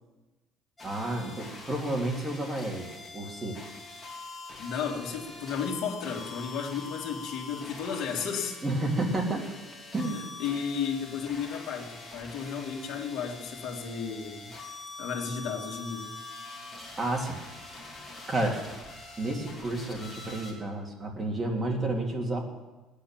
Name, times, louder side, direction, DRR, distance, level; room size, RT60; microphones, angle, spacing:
sound 1, 0.8-20.5, left 3 dB, 15° left, 3.0 m, -44 dB
voice 1, 0.8-3.6 8.6-9.5 9.9-10.2 17.0-17.3 18.3-18.6 19.2-22.4, right 2 dB, 15° right, 0 dB, 2.5 m, -31 dB
voice 2, 4.6-8.6 10.1-14.5 15.0-16.1, left 6 dB, 55° left, 0 dB, 2.6 m, -33 dB
18.5 x 10.5 x 7.4 m, 1.2 s
cardioid pair, 170°, 0 cm